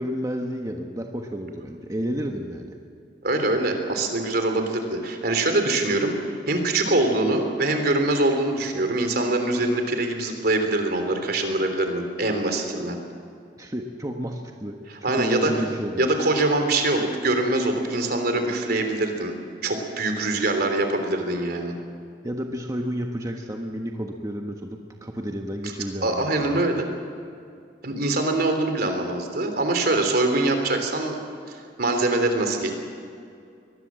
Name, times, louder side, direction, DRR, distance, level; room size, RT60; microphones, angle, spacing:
voice 1, 0.0-2.8 13.6-16.1 22.2-26.6, equal, 20° right, 2 dB, 1.3 m, -31 dB
voice 2, 3.2-6.2 6.5-13.0 15.0-15.5 16.0-19.3 19.6-21.7 26.0-26.8 27.8-31.2 31.5-32.7, right 2 dB, 60° right, 5 dB, 3.4 m, -23 dB
23.5 x 20.0 x 7.6 m, 2.3 s
head